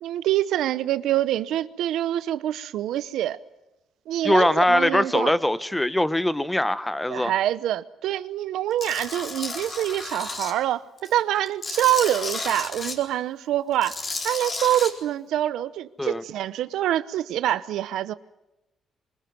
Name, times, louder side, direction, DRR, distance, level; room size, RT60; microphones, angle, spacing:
voice 1, 0.0-3.4 4.1-5.3 7.1-14.0 14.2-18.1, right 12 dB, 85° right, 0.9 m, -25 dB
voice 2, 4.2-7.3 16.0-16.2, left 1 dB, 10° left, 1.0 m, -22 dB
Tools, 8.8-10.5 11.0-13.0 13.7-14.9, left 3 dB, 35° left, 4.3 m, -33 dB
24.5 x 21.5 x 9.4 m
cardioid pair, 90°, 0 cm